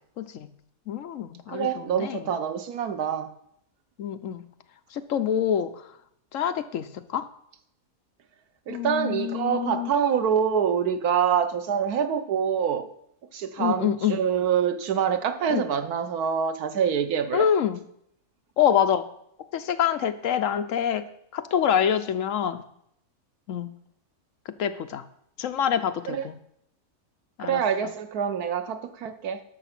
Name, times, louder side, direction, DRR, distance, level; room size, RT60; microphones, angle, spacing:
voice 1, 0.2-0.5 0.9-2.2 4.0-4.4 4.9-5.7 6.3-7.3 8.7-9.9 13.6-14.2 15.5-15.6 17.3-17.8 18.6-19.0 19.5-21.0 21.3-22.6 23.5-23.7 24.6-25.0 25.4-26.4 27.4-27.6, left 9 dB, 65° left, 1.0 m, -26 dB
voice 2, 1.5-3.3 8.7-12.9 13.3-17.5 26.1-26.3 27.4-29.4, right 7 dB, 90° right, 1.4 m, -26 dB
12.0 x 6.6 x 5.9 m
omnidirectional pair, 1.5 m